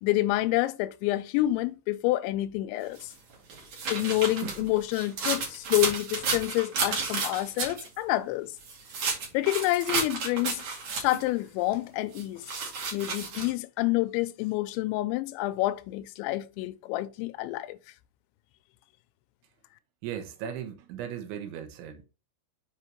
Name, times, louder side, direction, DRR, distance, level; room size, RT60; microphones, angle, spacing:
voice 1, 0.0-3.1 3.9-8.5 9.3-10.6 11.0-12.4 12.9-17.8, left 17 dB, 85° left, 2.7 m, -28 dB
sound 1, 3.0-7.9 8.6-11.3 12.2-13.5, right 4 dB, 45° right, 2.8 m, -32 dB
voice 2, 20.0-22.1, right 9 dB, 75° right, 3.3 m, -37 dB
7.4 x 5.6 x 3.1 m
omnidirectional pair, 5.7 m